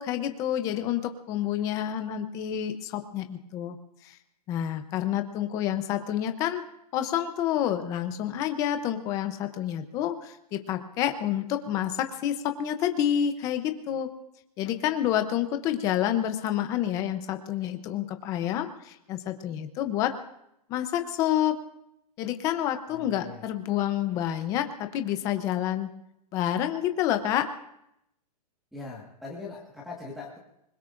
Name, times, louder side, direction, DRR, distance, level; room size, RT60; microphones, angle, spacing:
voice 1, 0.0-3.8 4.0-4.2 4.5-6.6 6.9-14.1 14.6-20.1 20.7-21.6 22.2-25.9 26.3-27.5, left 11 dB, 15° left, 8 dB, 0.7 m, -28 dB
voice 2, 22.9-23.4 28.7-30.4, left 3 dB, ahead, -8 dB, 1.6 m, -41 dB
25.5 x 21.0 x 2.6 m, 0.81 s
hypercardioid pair, 175°, 21 cm